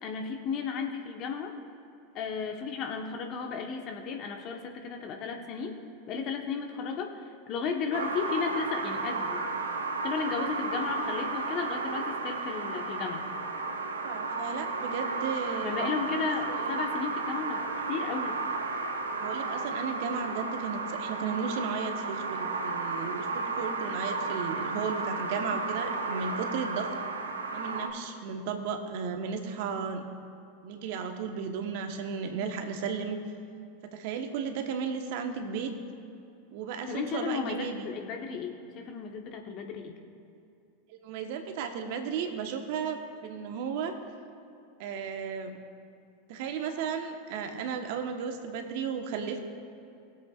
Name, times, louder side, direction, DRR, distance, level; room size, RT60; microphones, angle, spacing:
voice 1, 0.0-1.5 2.1-5.8 6.1-9.4 10.0-13.3 15.6-18.4 36.9-40.0, left 5 dB, 45° left, 3 dB, 1.1 m, -34 dB
sound 1, 7.9-27.9, right 3 dB, 85° right, 0.8 m, -33 dB
voice 2, 14.0-15.8 16.5-16.7 19.1-26.9 27.5-30.0 30.6-33.2 33.9-35.7 36.5-37.9 40.9-43.9 44.8-45.5 46.3-49.4, right 6 dB, 60° right, 6 dB, 1.1 m, -34 dB
20.5 x 8.0 x 2.4 m, 2.6 s
hypercardioid pair, 90°, 0 cm